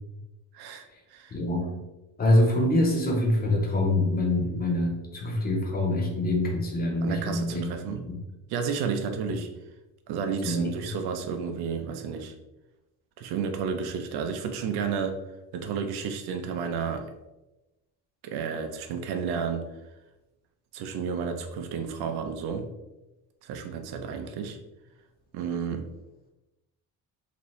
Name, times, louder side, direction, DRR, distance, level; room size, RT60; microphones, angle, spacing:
voice 1, 0.5-1.4 7.0-8.0 8.5-9.5 10.1-12.3 13.2-15.2 15.5-17.1 18.2-19.6 20.7-22.7 23.4-24.6 25.3-25.9, right 6 dB, 75° right, 6 dB, 0.6 m, -31 dB
voice 2, 1.3-1.7 2.2-8.2 10.4-10.7, left 1 dB, 25° left, 1 dB, 0.5 m, -25 dB
4.1 x 2.7 x 3.0 m, 1.0 s
cardioid pair, 175°, 39 cm